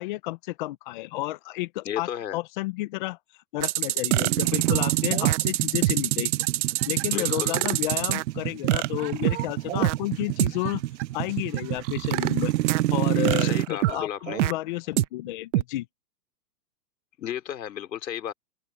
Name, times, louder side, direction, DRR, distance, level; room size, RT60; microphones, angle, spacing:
voice 1, 0.0-3.2 3.5-6.3 6.9-10.8 11.1-12.5 12.9-15.9, left 18 dB, 30° left, 0.6 m, -31 dB
voice 2, 1.9-2.4 7.1-7.5 13.4-14.5 17.2-18.3, left 10 dB, 80° left, 3.7 m, -33 dB
sound 1, 3.6-8.2 8.7-9.9 10.4-10.5 11.0-11.1 11.6-12.8 13.3-14.5 15.0-15.1 15.5-15.6, right 16 dB, 45° right, 1.1 m, -25 dB
sound 2, 4.2-13.7, right 15 dB, 85° right, 0.6 m, -28 dB
hypercardioid pair, 150°, 49 cm